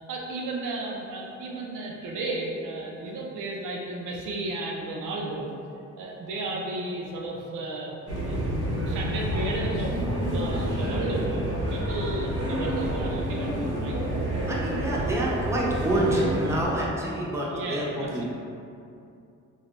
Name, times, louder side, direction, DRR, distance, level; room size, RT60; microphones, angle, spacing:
voice 1, 0.0-5.5 6.0-7.9 8.3-8.4 8.6-11.4 11.7-14.0 17.5-18.2, right 2 dB, 85° right, -1 dB, 0.5 m, -34 dB
sound 1, 8.1-16.6, right 1 dB, 50° right, 0.9 m, -28 dB
voice 2, 14.5-18.2, right 1 dB, 10° right, -4 dB, 0.5 m, -27 dB
3.4 x 2.3 x 2.4 m, 2.5 s
cardioid pair, 90°, 30 cm